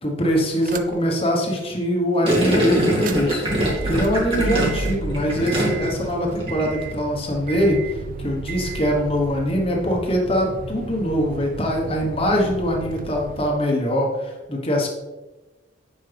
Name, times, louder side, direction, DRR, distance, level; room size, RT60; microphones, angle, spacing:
voice 1, 0.0-3.4 3.8-7.8 8.2-14.9, equal, 30° left, 0 dB, 1.3 m, -22 dB
sound 1, 0.6-1.1 1.6-1.7 2.8-13.5, right 4 dB, 45° right, 0.5 m, -33 dB
Gurgling, 2.2-6.0 6.3-6.7, equal, 30° right, 2.1 m, -23 dB
9.6 x 5.5 x 3.5 m, 1.1 s
head